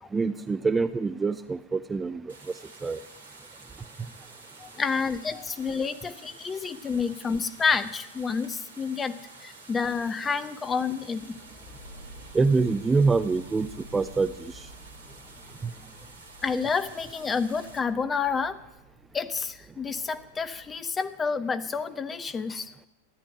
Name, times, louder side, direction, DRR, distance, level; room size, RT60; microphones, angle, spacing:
voice 1, 0.1-2.3 2.8-3.0 12.3-14.7 15.6-15.7, right 4 dB, 15° right, 13 dB, 0.5 m, -25 dB
sound 1, 2.3-17.8, right 3 dB, 70° right, 1.9 m, -50 dB
voice 2, 4.6-11.3 16.4-18.6 19.1-22.7, left 5 dB, 20° left, 11 dB, 1.0 m, -29 dB
sound 2, 11.2-20.9, equal, 55° left, 3.6 m, -51 dB
13.5 x 9.8 x 10.0 m, 0.88 s
figure-of-eight pair, 90°, 0 cm